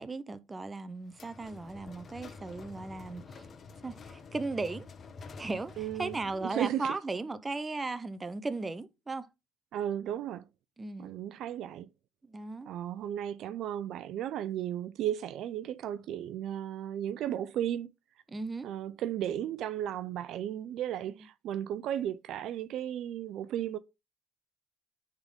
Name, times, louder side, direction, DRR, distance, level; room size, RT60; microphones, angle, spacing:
voice 1, 0.0-3.4 3.8-4.9 5.4-9.3 10.8-11.1 12.3-12.7 18.3-18.7, right 3 dB, 20° right, 0.7 m, -37 dB
sound 1, 1.1-6.6, left 4 dB, 40° left, 0.9 m, -48 dB
voice 2, 5.8-7.0 9.7-10.4 11.0-11.9 12.7-17.9 18.6-23.8, right 11 dB, 65° right, 0.4 m, -35 dB
9.6 x 3.7 x 3.6 m
supercardioid pair, 95°, 0 cm